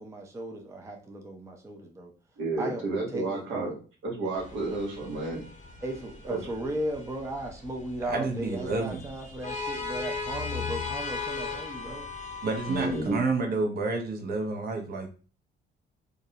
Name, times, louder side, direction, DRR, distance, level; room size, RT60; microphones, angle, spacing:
voice 1, 0.0-2.1 2.6-3.7 5.8-12.1 12.9-13.2, right 1 dB, 15° right, 2 dB, 0.4 m, -36 dB
voice 2, 2.4-3.7 4.0-5.4 6.3-6.4 12.7-13.2, right 2 dB, 75° right, -1 dB, 1.0 m, -31 dB
sound 1, 4.4-13.2, left 4 dB, 35° left, 0.6 m, -38 dB
voice 3, 8.0-9.0 12.4-15.1, right 3 dB, 50° right, 3 dB, 0.7 m, -29 dB
2.4 x 2.0 x 2.7 m, 0.36 s
cardioid pair, 90°, 20 cm